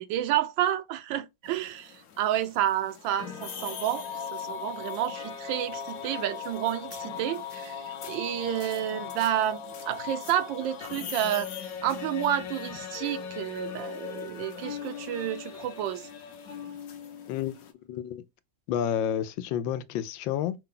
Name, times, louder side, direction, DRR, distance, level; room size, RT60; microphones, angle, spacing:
voice 1, 0.0-4.0 4.3-9.6 9.9-11.5 11.8-16.0, right 11 dB, 80° right, 1.3 m, -30 dB
sound 1, 1.4-17.7, left 7 dB, 60° left, 1.0 m, -39 dB
voice 2, 17.9-18.2 18.7-20.6, left 9 dB, 85° left, 1.3 m, -30 dB
5.4 x 2.2 x 3.7 m
omnidirectional pair, 2.0 m